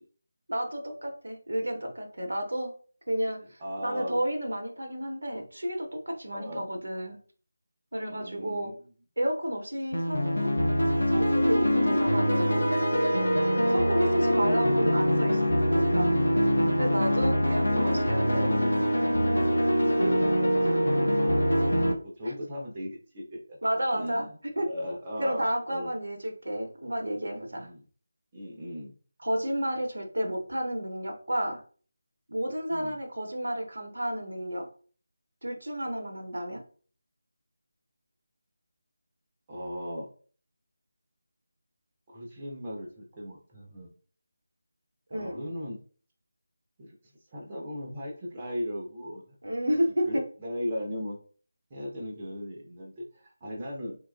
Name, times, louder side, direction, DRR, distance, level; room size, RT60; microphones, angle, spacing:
voice 1, 0.5-2.7 3.1-7.2 7.9-8.7 9.2-10.5 11.1-12.7 13.7-16.1 16.8-18.7 22.2-22.3 23.6-24.3 24.6-24.7 25.2-27.7 29.2-31.6 32.3-34.7 35.4-36.6 45.1-45.4 49.4-50.2, equal, 65° right, 3 dB, 0.6 m, -31 dB
voice 2, 3.6-4.2 6.3-6.6 8.1-8.7 17.5-18.6 19.7-21.7 22.0-23.6 23.9-24.3 24.6-25.9 27.5-27.8 28.3-28.9 32.7-33.0 39.5-40.1 42.1-43.9 45.1-45.8 46.8-46.9 47.3-49.2 50.0-51.2 51.7-54.0, equal, 20° right, -3 dB, 0.6 m, -37 dB
sound 1, 9.9-21.9, equal, 65° left, 0.5 m, -24 dB
2.9 x 2.3 x 2.2 m, 0.42 s
figure-of-eight pair, 160°, 0 cm